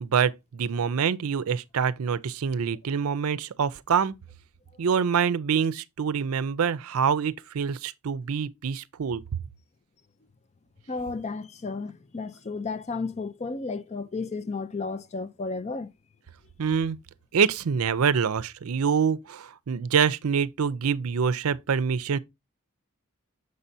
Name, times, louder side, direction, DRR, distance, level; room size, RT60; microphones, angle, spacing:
voice 1, 0.0-4.1 4.8-9.2 16.6-17.0 17.3-22.2, right 6 dB, 75° right, 0.5 m, -25 dB
voice 2, 10.9-15.9, left 4 dB, 30° left, 0.5 m, -33 dB
6.6 x 5.5 x 2.6 m
head